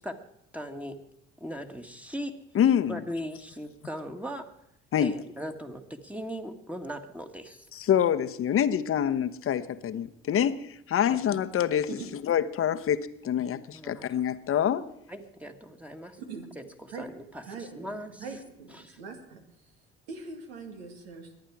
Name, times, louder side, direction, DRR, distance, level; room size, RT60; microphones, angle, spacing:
voice 1, 0.5-1.0 1.4-2.4 2.9-4.5 5.0-7.7 11.1-11.2 13.7-14.2 15.1-16.2 16.5-18.2 18.7-19.0, equal, 5° right, 5 dB, 1.6 m, -39 dB
voice 2, 2.5-3.0 4.9-5.1 7.7-11.9 12.2-14.8, left 9 dB, 45° left, 11 dB, 1.0 m, -26 dB
voice 3, 17.4-19.4 20.1-21.3, right 4 dB, 85° right, 4 dB, 2.1 m, -42 dB
22.5 x 8.9 x 4.8 m, 0.76 s
hypercardioid pair, 60°, 30 cm